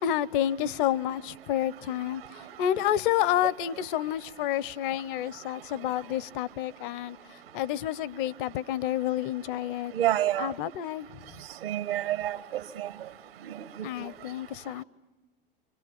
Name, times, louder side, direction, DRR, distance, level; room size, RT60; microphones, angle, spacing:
voice 1, 0.0-2.2 2.6-7.2 7.5-9.9 10.4-11.1 13.8-14.8, left 11 dB, 60° left, 0.9 m, -29 dB
voice 2, 9.9-10.5 11.6-12.9 13.5-13.6, right 13 dB, 80° right, 1.6 m, -28 dB
29.5 x 25.0 x 7.2 m
hypercardioid pair, 85°, 29 cm